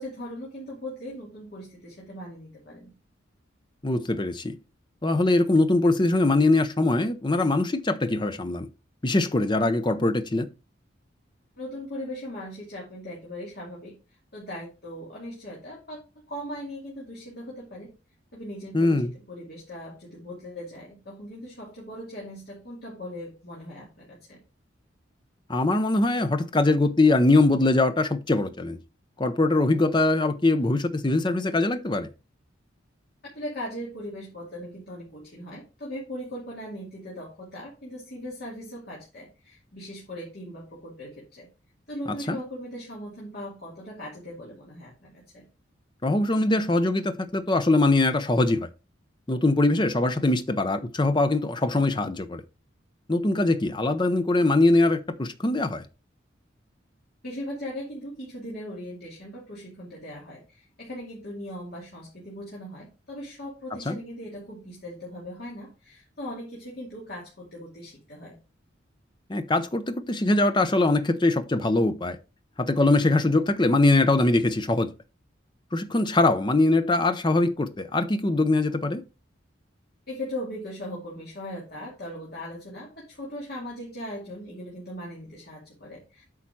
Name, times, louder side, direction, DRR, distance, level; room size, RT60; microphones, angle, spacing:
voice 1, 0.0-2.9 11.6-13.9 14.3-16.0 16.3-17.9 18.3-24.4 33.3-41.5 41.9-45.4 57.2-68.4 80.1-86.2, equal, 55° left, 2.5 m, -39 dB
voice 2, 3.8-4.6 5.0-8.7 9.0-10.5 18.7-19.1 25.5-28.8 29.2-32.1 42.3-42.4 46.0-48.7 49.3-52.4 53.1-55.8 63.9-64.0 69.3-72.2 72.6-74.9 75.7-79.0, left 2 dB, 25° left, 0.7 m, -22 dB
8.5 x 4.9 x 4.5 m
head